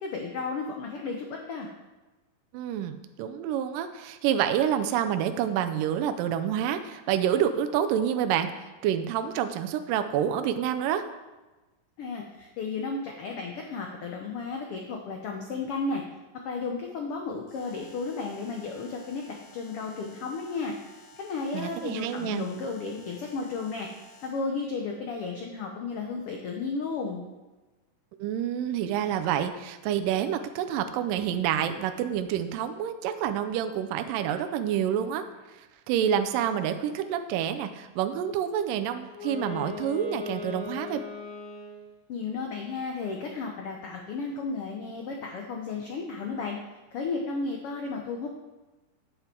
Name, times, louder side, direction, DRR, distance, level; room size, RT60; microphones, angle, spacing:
voice 1, 0.0-1.7 12.0-16.0 16.4-23.9 24.2-27.3 42.1-46.6 46.9-48.3, left 4 dB, 85° left, 1 dB, 1.2 m, -33 dB
voice 2, 2.5-8.5 8.8-11.1 21.5-22.5 28.2-35.3 35.6-41.0, right 9 dB, 85° right, 8 dB, 2.2 m, -28 dB
Alarm, 17.5-24.5, left 2 dB, 50° left, 2.6 m, -54 dB
Wind instrument woodwind instrument, 39.0-42.0, left 6 dB, 30° left, 4.0 m, -38 dB
9.6 x 8.2 x 4.4 m, 1.1 s
omnidirectional pair, 3.8 m